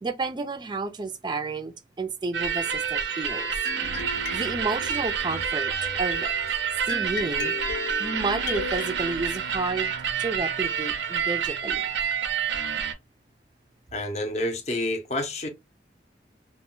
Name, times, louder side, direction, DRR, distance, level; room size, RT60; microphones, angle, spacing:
voice 1, 0.0-3.5 4.3-5.7 6.0-6.3 6.9-9.9 10.2-11.9, right 3 dB, 25° right, 0.3 m, -31 dB
sound 1, 2.3-12.9, right 7 dB, 90° right, 0.5 m, -28 dB
sound 2, 3.6-8.9, left 4 dB, 75° left, 0.8 m, -37 dB
voice 2, 13.9-15.5, left 1 dB, 40° left, 0.6 m, -29 dB
2.2 x 2.1 x 3.7 m
head